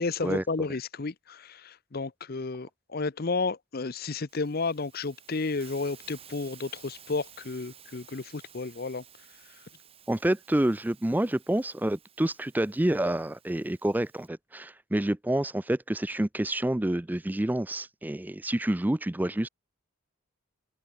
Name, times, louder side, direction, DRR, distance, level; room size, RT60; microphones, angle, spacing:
voice 1, 0.0-9.0 9.5-9.6, left 3 dB, 45° left, 0.7 m, -32 dB
Hiss, 4.3-14.3, right 9 dB, 25° right, 4.8 m, -54 dB
voice 2, 10.1-19.5, right 1 dB, 10° right, 0.3 m, -28 dB
open air
head